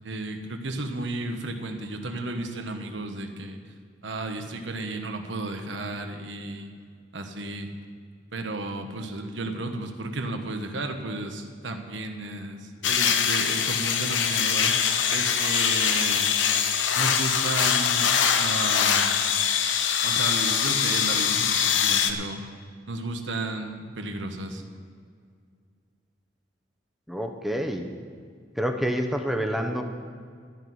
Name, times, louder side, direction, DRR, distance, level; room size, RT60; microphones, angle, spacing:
voice 1, 0.0-3.6 4.0-6.7 7.1-7.7 8.3-14.7 15.1-16.3 16.9-19.1 20.0-22.4 22.9-24.6, right 2 dB, 80° right, 5 dB, 1.2 m, -33 dB
sound 1, 12.8-22.1, left 7 dB, 85° left, 0.8 m, -23 dB
voice 2, 27.1-27.9 28.6-29.8, equal, ahead, 4 dB, 0.8 m, -27 dB
13.0 x 5.9 x 9.4 m, 2.1 s
head